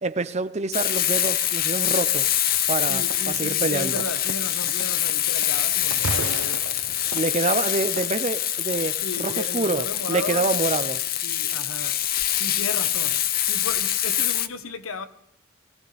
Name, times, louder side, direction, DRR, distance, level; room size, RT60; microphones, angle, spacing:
voice 1, 0.0-2.3 2.7-3.9 7.1-11.0, right 3 dB, 35° right, 0.6 m, -26 dB
Frying (food), 0.7-14.5, left 12 dB, 45° left, 0.6 m, -25 dB
voice 2, 2.9-7.0 9.0-10.9 11.2-12.0 12.4-13.2 13.5-15.1, left 3 dB, 85° left, 1.2 m, -35 dB
sound 1, 3.1-3.4 4.0-5.6 5.8-8.1, right 4 dB, 80° right, 0.7 m, -35 dB
22.0 x 16.0 x 3.4 m
head